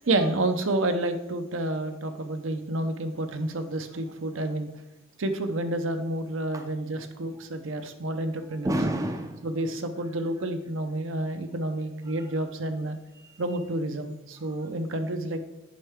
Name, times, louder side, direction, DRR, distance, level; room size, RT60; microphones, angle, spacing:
voice 1, 0.0-4.7 5.2-8.7 9.4-13.0 13.4-15.4, right 1 dB, 70° right, 7 dB, 0.7 m, -29 dB
voice 2, 8.6-9.5 12.1-12.4 12.8-13.6 14.4-14.6, right 1 dB, 15° right, 5 dB, 0.5 m, -32 dB
8.9 x 5.5 x 3.5 m, 0.96 s
head